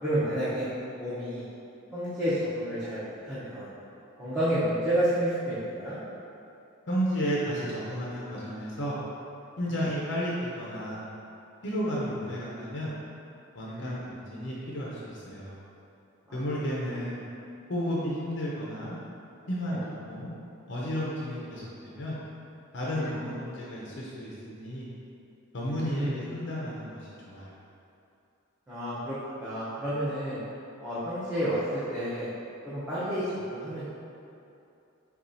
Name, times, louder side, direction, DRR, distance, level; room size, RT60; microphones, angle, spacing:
voice 1, 0.0-0.7 1.0-1.4 1.9-3.7 4.2-6.0 9.7-9.8 13.6-14.0 16.3-16.4 19.7-19.8 22.9-23.1 25.6-26.2 28.7-30.4 30.8-32.3 32.6-33.9, equal, 5° right, -15 dB, 0.7 m, -30 dB
voice 2, 6.9-9.0 9.6-11.0 11.6-12.9 13.5-15.6 16.3-17.2 17.7-19.0 19.5-19.8 20.1-20.3 20.7-22.2 22.7-24.9 25.5-27.5, equal, 55° left, -6 dB, 0.6 m, -32 dB
6.9 x 2.4 x 2.7 m, 2.7 s
head